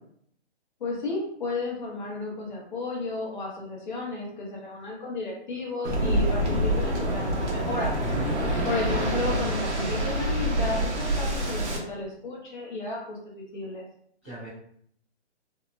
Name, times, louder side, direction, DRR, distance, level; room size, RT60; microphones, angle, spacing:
voice 1, 0.8-7.9 8.6-13.8, left 2 dB, 45° left, -2 dB, 0.8 m, -33 dB
Waves surf, 5.8-11.8, right 1 dB, 80° right, 0.8 m, -26 dB
voice 2, 8.0-8.5 14.2-14.5, right 2 dB, 10° right, -17 dB, 0.4 m, -38 dB
2.7 x 2.1 x 2.5 m, 0.66 s
hypercardioid pair, 160°, 34 cm